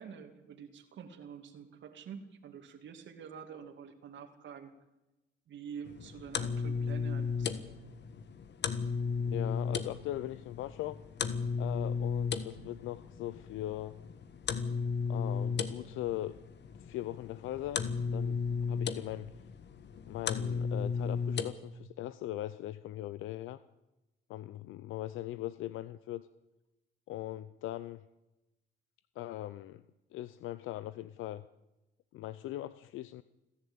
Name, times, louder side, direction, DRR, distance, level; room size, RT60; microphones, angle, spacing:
voice 1, 0.0-4.7 5.5-7.7, right 7 dB, 70° right, 5 dB, 2.5 m, -47 dB
sound 1, 5.9-21.5, left 5 dB, 60° left, 1.6 m, -35 dB
voice 2, 9.2-11.0 11.6-13.9 15.1-16.4 16.8-18.4 18.7-19.3 20.1-23.6 24.3-26.3 27.1-28.0 29.2-29.8 30.1-31.4 32.1-33.2, left 14 dB, 90° left, 15 dB, 0.6 m, -40 dB
28.5 x 11.0 x 8.8 m, 1.0 s
cardioid pair, 90°, 20 cm